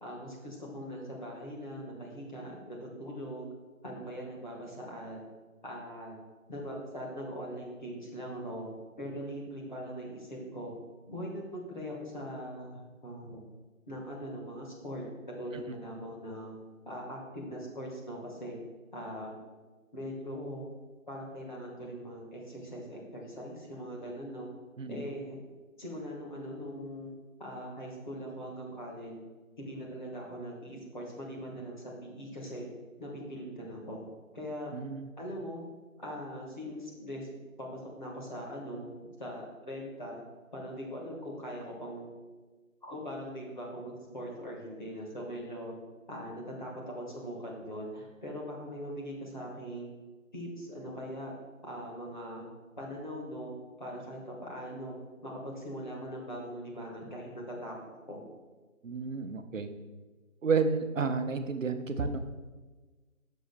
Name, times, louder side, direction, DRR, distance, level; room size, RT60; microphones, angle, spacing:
voice 1, 0.0-3.5 3.8-5.2 5.6-6.2 6.5-8.7 9.0-10.7 11.1-13.4 13.9-15.0 15.4-16.6 16.8-18.6 18.9-19.4 19.9-20.6 21.1-24.5 24.9-25.4 25.8-27.1 27.4-29.1 29.6-32.7 33.0-34.0 34.3-34.7 35.2-35.6 36.0-38.9 39.2-40.2 40.5-42.1 42.8-45.7 46.1-49.9 50.3-51.3 51.6-52.5 52.8-53.5 53.8-57.7 58.1-58.2, equal, 35° left, -3 dB, 1.4 m, -41 dB
voice 2, 34.7-35.1 58.8-59.7 60.4-62.2, right 5 dB, 65° right, 8 dB, 0.7 m, -31 dB
10.5 x 6.2 x 2.2 m, 1.3 s
figure-of-eight pair, 170°, 41 cm